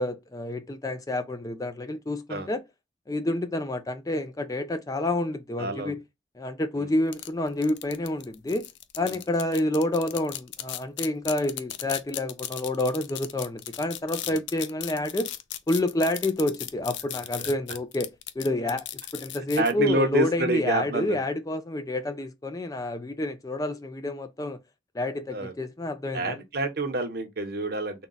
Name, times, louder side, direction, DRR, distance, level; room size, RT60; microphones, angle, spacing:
voice 1, 0.0-2.6 3.1-6.0 6.4-8.7 9.0-15.3 15.7-18.1 18.4-18.8 19.1-24.6 24.9-26.4, left 1 dB, 20° left, 0.4 m, -28 dB
voice 2, 5.6-5.9 6.8-6.9 9.0-9.2 14.2-14.3 17.4-17.5 19.6-21.2 25.3-25.5 26.1-28.1, right 2 dB, 55° right, 0.8 m, -28 dB
sound 1, 7.1-19.7, left 12 dB, 80° left, 0.5 m, -36 dB
3.6 x 2.3 x 3.9 m
head